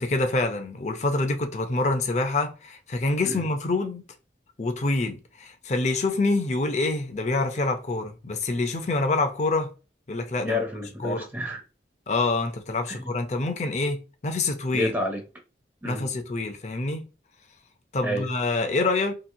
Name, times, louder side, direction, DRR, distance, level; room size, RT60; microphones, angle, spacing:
voice 1, 0.0-4.0 4.6-9.7 10.1-10.6 11.0-11.3 12.1-14.9 15.8-17.0 17.9-19.1, left 2 dB, 40° left, 0.5 m, -26 dB
voice 2, 10.4-11.6 12.9-13.0 14.7-15.2 15.8-16.1 18.0-18.3, left 1 dB, 10° right, 0.5 m, -29 dB
2.9 x 2.6 x 2.6 m
head